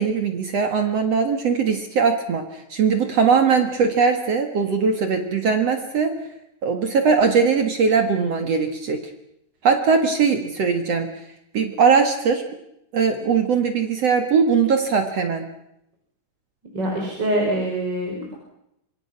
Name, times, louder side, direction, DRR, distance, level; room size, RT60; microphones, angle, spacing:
voice 1, 0.0-6.1 6.6-9.0 9.6-11.1 11.5-12.4 12.9-15.4, right 5 dB, 60° right, 6 dB, 1.7 m, -20 dB
voice 2, 16.7-18.4, right 1 dB, 25° right, 0 dB, 4.6 m, -24 dB
26.5 x 24.0 x 6.0 m, 0.80 s
omnidirectional pair, 5.5 m